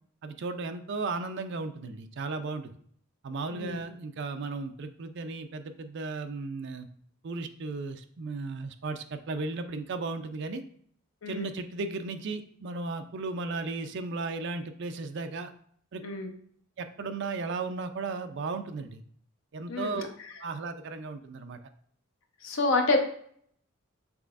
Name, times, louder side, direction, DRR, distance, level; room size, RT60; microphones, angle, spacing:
voice 1, 0.2-2.8 3.2-6.9 7.2-10.6 11.3-15.5 15.9-16.0 16.8-19.0 19.5-21.6, right 3 dB, 55° right, 8 dB, 0.4 m, -35 dB
voice 2, 19.7-20.1 22.4-23.0, left 3 dB, 65° left, 4 dB, 0.7 m, -28 dB
5.9 x 3.3 x 2.4 m, 0.62 s
head